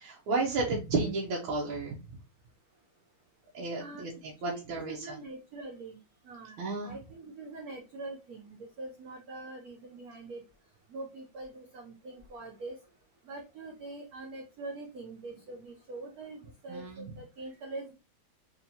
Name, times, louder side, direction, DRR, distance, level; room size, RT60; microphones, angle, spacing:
voice 1, 0.0-2.2 3.5-5.2 6.6-6.9 16.7-17.1, right 3 dB, 90° right, -2 dB, 1.7 m, -33 dB
voice 2, 4.4-6.0 6.2-10.4 10.9-12.7 13.3-17.9, right 2 dB, 60° right, 2 dB, 1.0 m, -44 dB
4.3 x 2.8 x 2.7 m, 0.30 s
omnidirectional pair, 2.2 m